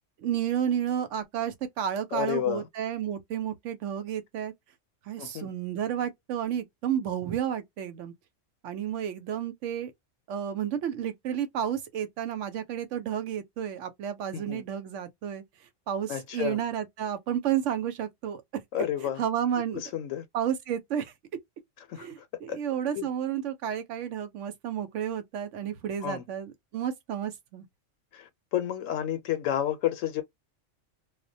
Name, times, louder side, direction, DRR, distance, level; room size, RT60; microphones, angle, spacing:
voice 1, 0.2-4.5 5.1-8.1 8.6-9.9 10.3-15.4 15.9-18.6 19.2-19.8 20.3-21.1 22.0-27.6, right 9 dB, 75° right, 0.9 m, -31 dB
voice 2, 2.1-2.6 5.2-5.5 14.3-14.6 16.1-16.6 18.7-19.2 19.7-20.3 21.9-22.6 23.0-23.1 26.0-26.2 28.1-30.2, left 11 dB, 80° left, 0.9 m, -31 dB
2.2 x 2.1 x 2.6 m
omnidirectional pair, 1.3 m